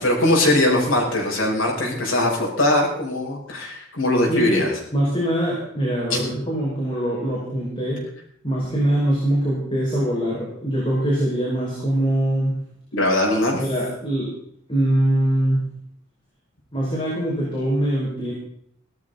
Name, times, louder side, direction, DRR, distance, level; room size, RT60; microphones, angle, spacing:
voice 1, 0.0-4.7 6.1-6.2 12.9-13.6, left 1 dB, 80° left, -1 dB, 6.2 m, -20 dB
voice 2, 4.3-4.6 4.9-8.0 8.4-12.6 13.6-14.3 14.7-15.7 16.7-18.3, right 1 dB, 25° left, -6 dB, 5.9 m, -23 dB
18.0 x 13.5 x 4.2 m, 0.66 s
head